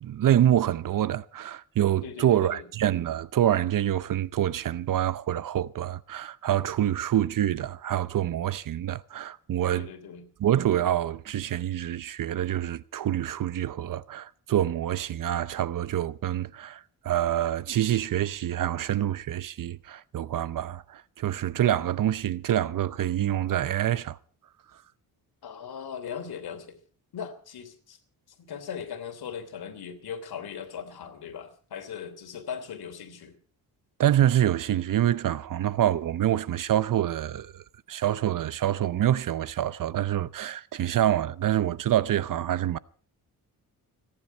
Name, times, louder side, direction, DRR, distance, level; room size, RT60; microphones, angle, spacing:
voice 1, 0.0-9.9 10.4-24.2 34.0-42.8, right 11 dB, 60° right, 0.7 m, -26 dB
voice 2, 2.0-2.7 9.7-10.3 25.4-26.8 27.1-28.0 28.4-33.4, left 7 dB, 80° left, 3.1 m, -39 dB
29.5 x 10.0 x 4.5 m
cardioid pair, 120°, 37 cm